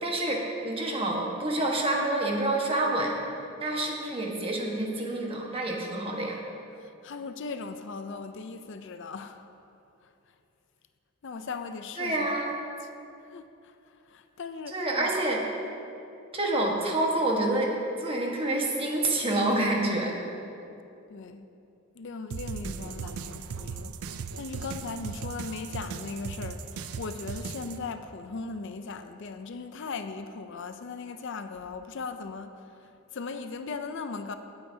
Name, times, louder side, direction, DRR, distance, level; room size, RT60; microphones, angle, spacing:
voice 1, 0.0-3.1 3.6-6.4 12.0-12.5 14.7-15.4 16.3-17.7 18.0-20.2, right 2 dB, 25° right, 1.3 m, -27 dB
voice 2, 6.7-9.5 10.0-10.1 11.2-12.4 13.3-15.1 21.1-21.5 21.9-23.9 24.4-34.3, left 4 dB, 55° left, 0.5 m, -38 dB
sound 1, 22.3-27.8, right 5 dB, 90° right, 0.4 m, -37 dB
17.5 x 8.9 x 2.8 m
head